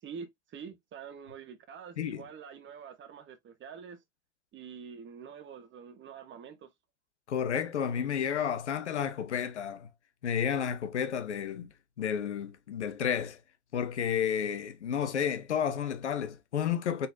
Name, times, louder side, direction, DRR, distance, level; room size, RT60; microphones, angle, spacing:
voice 1, 0.0-4.0 4.5-6.7, right 6 dB, 35° right, 1.1 m, -46 dB
voice 2, 7.3-9.9 10.2-13.4 13.7-17.1, left 8 dB, 90° left, 0.7 m, -31 dB
4.1 x 3.9 x 2.6 m
hypercardioid pair, 75°, 33 cm